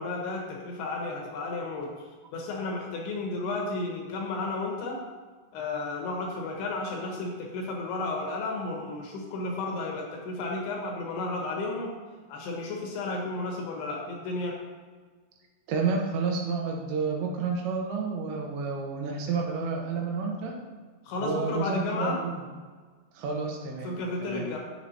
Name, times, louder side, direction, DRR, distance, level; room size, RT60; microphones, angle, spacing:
voice 1, 0.0-1.9 2.3-5.0 5.5-11.9 12.3-14.5 21.0-22.2 23.8-24.6, left 2 dB, 75° left, -1 dB, 2.8 m, -32 dB
voice 2, 15.7-20.5 21.2-22.4 23.1-23.9 24.2-24.5, right 4 dB, 85° right, 0 dB, 3.2 m, -30 dB
7.5 x 7.4 x 2.8 m, 1.5 s
omnidirectional pair, 5.2 m